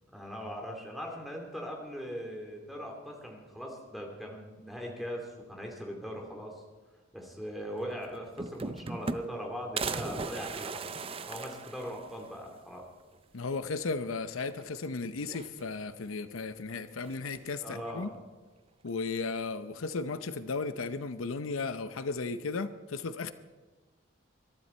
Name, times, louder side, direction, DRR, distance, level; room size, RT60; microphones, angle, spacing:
voice 1, 0.1-6.6 7.1-10.8 11.3-12.8 17.6-18.1, equal, ahead, 0 dB, 2.6 m, -40 dB
sound 1, 7.8-7.9 8.1-9.4 9.8-12.4 12.8-12.9 13.1-13.2 14.4-14.9 15.2-16.0 17.0-17.6, right 4 dB, 25° right, 0.5 m, -38 dB
voice 2, 13.3-18.1 18.8-23.3, left 4 dB, 80° left, 11 dB, 0.7 m, -35 dB
22.0 x 12.5 x 4.4 m, 1.3 s
head